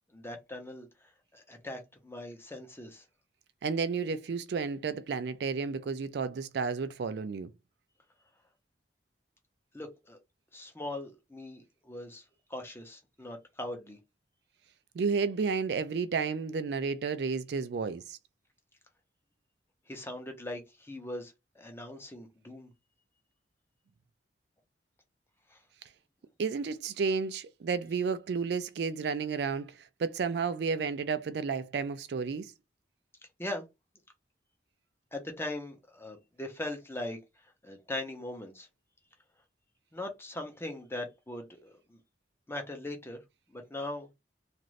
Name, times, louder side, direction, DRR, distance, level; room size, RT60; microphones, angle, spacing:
voice 1, 0.1-0.9 1.3-3.0 9.7-10.2 10.5-12.2 12.5-14.0 19.9-22.7 25.5-25.6 33.4-33.6 35.1-37.2 37.6-38.7 39.9-42.0 42.5-43.2 43.5-44.1, left 1 dB, 15° left, 0.7 m, -40 dB
voice 2, 3.6-7.5 14.9-18.2 26.4-32.5, right 5 dB, 65° right, 0.4 m, -32 dB
2.5 x 2.5 x 3.1 m
head